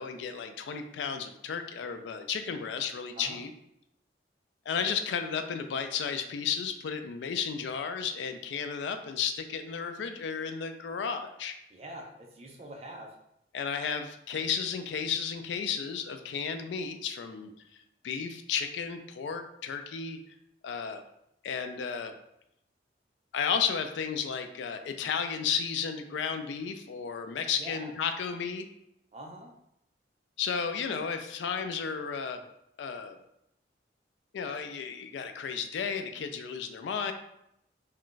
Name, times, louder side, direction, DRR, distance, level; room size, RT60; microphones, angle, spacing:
voice 1, 0.0-3.5 4.7-11.5 13.5-17.5 18.0-20.2 20.6-21.0 21.4-22.1 23.3-28.7 30.4-32.4 32.8-33.2 34.3-37.1, left 6 dB, 80° left, 7 dB, 0.3 m, -33 dB
voice 2, 11.7-13.2 27.6-27.9 29.1-29.5, right 1 dB, 35° right, 1 dB, 0.5 m, -44 dB
2.4 x 2.2 x 3.7 m, 0.79 s
head